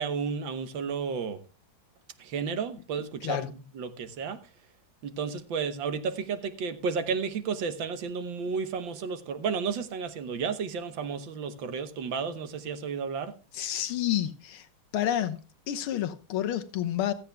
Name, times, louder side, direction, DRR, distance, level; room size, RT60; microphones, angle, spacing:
voice 1, 0.0-1.4 2.2-4.4 5.0-13.3, right 5 dB, 65° right, 1.7 m, -32 dB
voice 2, 13.5-14.7 14.9-15.4 15.7-17.1, left 11 dB, 85° left, 1.9 m, -29 dB
15.5 x 13.5 x 2.3 m
omnidirectional pair, 2.3 m